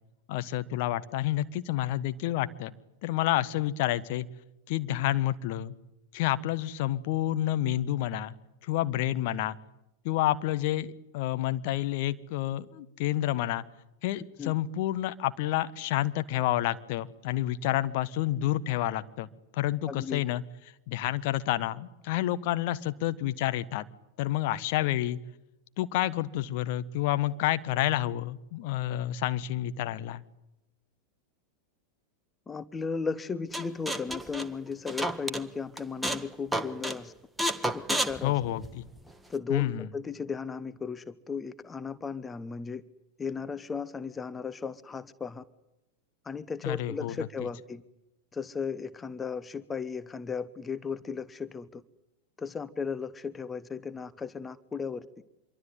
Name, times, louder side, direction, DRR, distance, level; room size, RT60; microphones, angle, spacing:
voice 1, 0.3-2.7 3.0-4.3 4.7-5.7 6.1-8.3 8.6-9.6 10.0-13.6 14.0-20.4 20.9-23.8 24.2-25.2 25.8-30.2 38.2-38.9 39.5-39.9 46.6-47.3, left 14 dB, 50° left, 12 dB, 1.4 m, -29 dB
voice 2, 19.9-20.2 32.5-37.1 37.7-38.3 39.3-42.8 43.2-45.4 46.2-47.8 48.3-51.8 52.4-55.1, left 5 dB, 15° left, 15 dB, 1.0 m, -35 dB
sound 1, 33.5-35.4 35.8-36.3 36.5-37.0 37.4-39.0, right 1 dB, 5° right, 1.5 m, -31 dB
26.0 x 24.0 x 9.4 m, 0.89 s
figure-of-eight pair, 90°, 0 cm